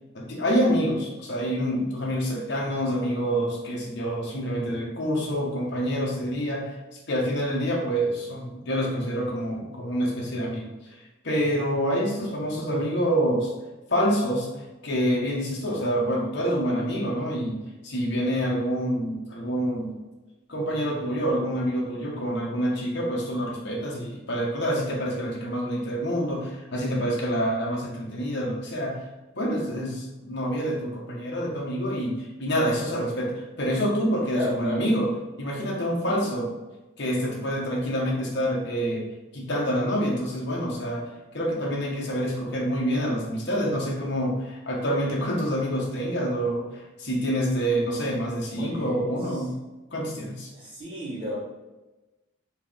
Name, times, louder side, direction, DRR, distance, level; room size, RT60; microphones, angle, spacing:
voice 1, 0.1-6.8 7.1-10.7 11.2-13.5 13.9-14.5 14.8-17.6 17.8-19.9 20.5-29.0 29.4-35.1 35.4-36.5 37.0-39.0 39.3-41.0 41.3-49.5 49.9-50.5, equal, 55° left, -3 dB, 1.1 m, -27 dB
voice 2, 34.3-34.8 36.0-36.3 48.6-49.4 50.5-51.4, equal, 25° right, -7 dB, 1.4 m, -34 dB
4.6 x 3.0 x 3.6 m, 1.1 s
head